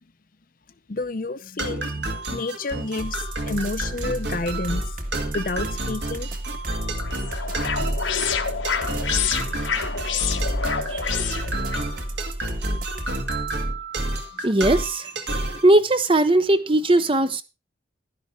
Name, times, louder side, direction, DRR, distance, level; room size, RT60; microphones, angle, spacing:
voice 1, 0.9-5.0 5.3-6.3, left 3 dB, 45° left, 0.6 m, -30 dB
sound 1, 1.6-15.7, right 1 dB, 65° right, 2.1 m, -30 dB
sound 2, 3.0-13.7, right 1 dB, 45° right, 1.8 m, -33 dB
sound 3, 6.7-11.9, left 7 dB, 85° left, 1.3 m, -28 dB
voice 2, 10.9-11.4 14.4-15.1 15.6-17.4, right 1 dB, 25° right, 0.7 m, -19 dB
12.0 x 10.5 x 3.7 m
head